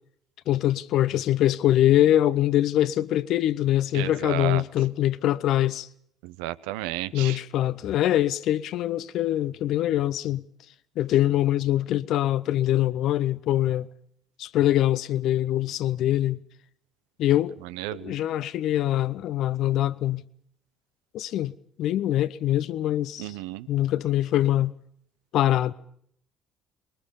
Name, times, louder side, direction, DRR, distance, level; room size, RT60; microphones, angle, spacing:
voice 1, 0.5-5.9 7.1-10.4 11.0-13.9 14.4-16.4 17.2-17.6 18.0-20.2 21.1-21.5 21.8-23.3 23.7-24.7 25.3-25.7, left 13 dB, 60° left, 0.9 m, -23 dB
voice 2, 3.9-4.6 6.2-7.4 17.6-18.1 23.2-23.7, right 15 dB, 70° right, 0.8 m, -33 dB
22.5 x 22.0 x 7.0 m
figure-of-eight pair, 50°, 0 cm